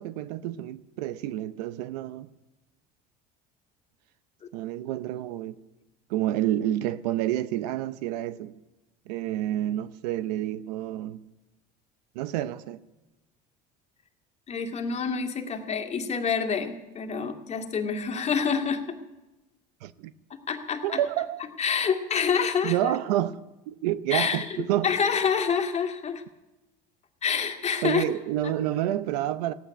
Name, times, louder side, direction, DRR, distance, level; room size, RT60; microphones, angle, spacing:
voice 1, 0.0-2.3 4.5-5.6 6.1-8.5 9.1-11.2 12.1-12.8 19.8-20.1 20.8-21.4 22.6-23.4 23.7-24.9 27.8-29.5, right 13 dB, 85° right, 0.7 m, -29 dB
voice 2, 14.5-19.0 20.5-21.0 21.6-22.9 24.1-24.6 24.8-26.2 27.2-28.0, left 6 dB, 35° left, 2.1 m, -27 dB
16.0 x 9.0 x 10.0 m
supercardioid pair, 100°, 20 cm